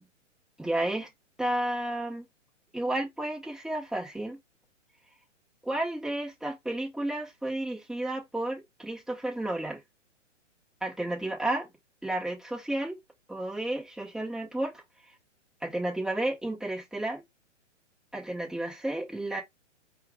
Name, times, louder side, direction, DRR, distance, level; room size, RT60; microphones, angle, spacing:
voice 1, 0.6-1.1 1.4-2.3 2.7-4.4 5.6-9.8 10.8-11.7 12.0-13.0 13.3-14.7 15.6-17.2 18.1-19.4, right 1 dB, ahead, 1.2 m, -32 dB
4.6 x 2.5 x 3.5 m
hypercardioid pair, 130°, 37 cm